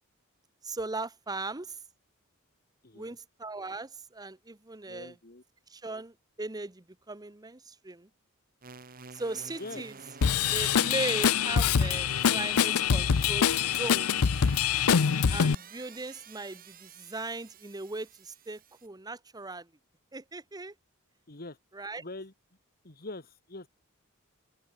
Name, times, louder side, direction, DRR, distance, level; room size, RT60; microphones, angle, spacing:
voice 1, 0.6-1.8 2.9-5.2 5.7-8.1 9.1-9.9 10.5-14.1 15.3-19.7 20.1-20.7 21.7-22.0, right 3 dB, 20° right, 1.0 m, -38 dB
voice 2, 2.8-3.2 4.9-5.4 9.6-9.8 21.3-21.6 22.0-22.3 22.8-23.7, left 2 dB, 45° left, 2.3 m, -43 dB
sound 1, 8.6-18.9, right 5 dB, 40° right, 2.2 m, -49 dB
Drum kit / Drum, 10.2-15.5, left 7 dB, 90° left, 0.6 m, -25 dB
open air
head